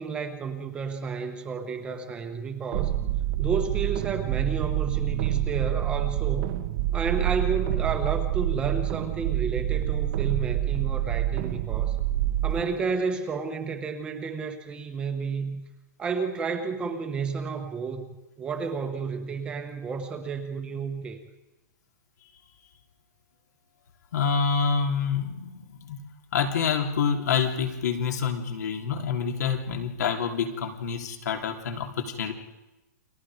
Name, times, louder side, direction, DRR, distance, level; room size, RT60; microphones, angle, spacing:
voice 1, 0.0-3.0 3.4-6.5 6.9-12.0 12.4-15.6 16.0-18.1 18.4-21.2, right 5 dB, 10° right, 6 dB, 1.1 m, -31 dB
sound 1, 2.7-12.6, right 13 dB, 35° right, 1.0 m, -27 dB
voice 2, 24.1-26.0 26.3-32.3, left 6 dB, 65° left, 3 dB, 3.6 m, -27 dB
30.0 x 24.0 x 5.1 m, 1.0 s
hypercardioid pair, 175°, 10 cm